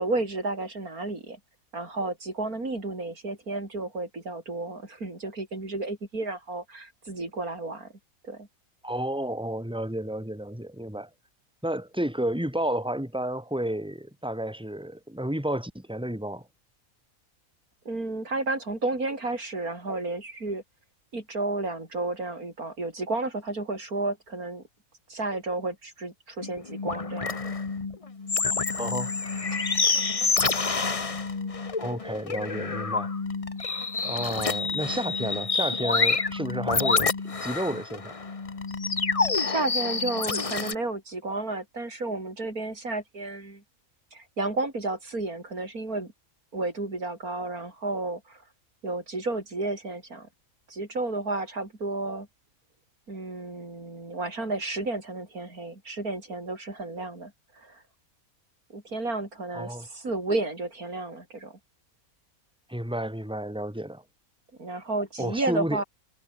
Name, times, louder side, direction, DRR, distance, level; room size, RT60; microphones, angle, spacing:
voice 1, 0.0-1.4 1.7-7.9 8.2-8.5 17.9-20.6 21.1-24.6 25.1-27.6 29.5-29.6 39.5-43.6 44.1-46.1 46.5-48.4 48.8-50.3 50.7-52.3 53.1-57.8 58.7-61.6 64.6-65.8, right 2 dB, 85° right, 5.6 m, -32 dB
voice 2, 8.8-11.1 11.6-16.4 28.8-29.1 31.8-33.1 34.0-38.2 59.5-59.9 62.7-64.0 65.2-65.8, right 1 dB, 5° right, 4.8 m, -31 dB
sound 1, 26.4-40.7, left 4 dB, 25° left, 1.0 m, -28 dB
omnidirectional pair, 1.5 m